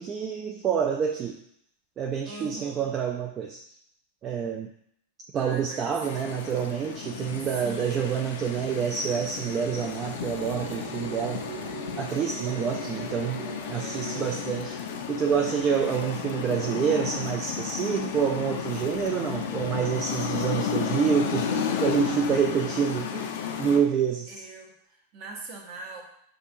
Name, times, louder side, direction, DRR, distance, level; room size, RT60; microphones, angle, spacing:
voice 1, 0.0-1.4 2.0-3.6 4.2-4.7 5.3-11.4 12.0-14.8 15.1-23.3 23.6-24.3, right 7 dB, 25° right, 2 dB, 0.4 m, -27 dB
voice 2, 2.2-2.9 5.3-5.9 7.4-8.1 13.8-14.3 24.3-26.0, right 3 dB, 45° right, 2 dB, 0.8 m, -42 dB
sound 1, 6.0-23.8, left 8 dB, 55° left, 0.4 m, -33 dB
sound 2, 9.5-16.6, right 2 dB, 80° right, 1.2 m, -41 dB
6.7 x 2.5 x 2.6 m, 0.71 s
figure-of-eight pair, 90°, 0 cm